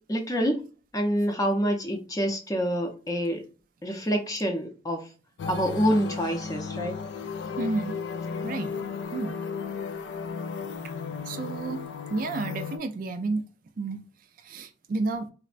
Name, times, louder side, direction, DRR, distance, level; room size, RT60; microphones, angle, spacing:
voice 1, 0.1-0.6 0.9-3.4 3.8-5.0 5.5-6.9, equal, 20° left, 3 dB, 0.5 m, -26 dB
sound 1, 5.4-12.8, left 5 dB, 70° left, 0.3 m, -35 dB
voice 2, 7.6-8.0 8.4-8.8 9.1-9.4 11.2-11.8 12.1-13.4 13.8-14.0 14.4-15.3, right 3 dB, 50° right, 8 dB, 0.3 m, -31 dB
4.2 x 2.0 x 2.4 m, 0.36 s
head